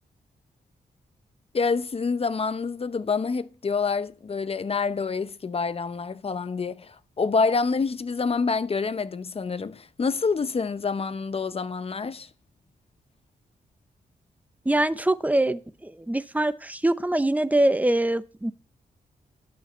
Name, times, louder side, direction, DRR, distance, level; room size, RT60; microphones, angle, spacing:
voice 1, 1.5-12.3, left 4 dB, 40° left, 0.7 m, -27 dB
voice 2, 14.7-18.5, right 1 dB, 10° right, 0.7 m, -24 dB
12.0 x 5.3 x 5.5 m
cardioid pair, 75°, 16 cm